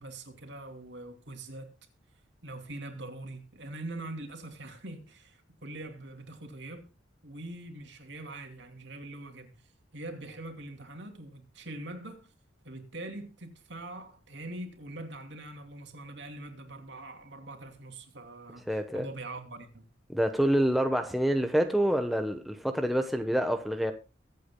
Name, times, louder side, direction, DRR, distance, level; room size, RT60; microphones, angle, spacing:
voice 1, 0.0-1.7 2.4-6.9 7.2-9.7 9.9-12.3 12.6-19.9, right 2 dB, 65° right, 2.8 m, -43 dB
voice 2, 18.7-19.1 20.1-23.9, equal, ahead, 1.0 m, -27 dB
23.0 x 8.5 x 2.2 m
head